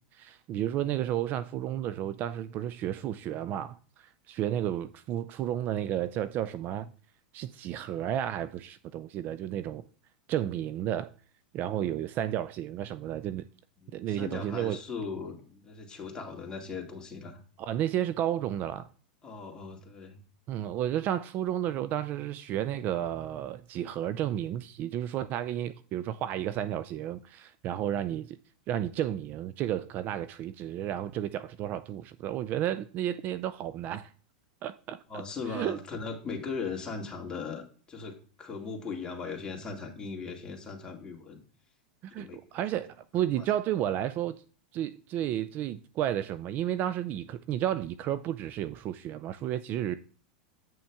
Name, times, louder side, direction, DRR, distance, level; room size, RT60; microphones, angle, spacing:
voice 1, 0.0-6.9 7.3-9.8 10.3-11.1 11.5-13.5 13.9-14.8 17.6-18.9 20.5-28.4 28.7-34.1 34.6-35.2 35.5-35.8 42.0-44.4 44.7-50.0, right 11 dB, 40° right, 0.4 m, -32 dB
voice 2, 13.8-17.4 19.2-20.2 35.1-37.6 37.9-41.4 42.1-42.4 43.4-43.5, left 5 dB, 20° left, 2.2 m, -38 dB
8.6 x 6.1 x 3.5 m
hypercardioid pair, 105°, 5 cm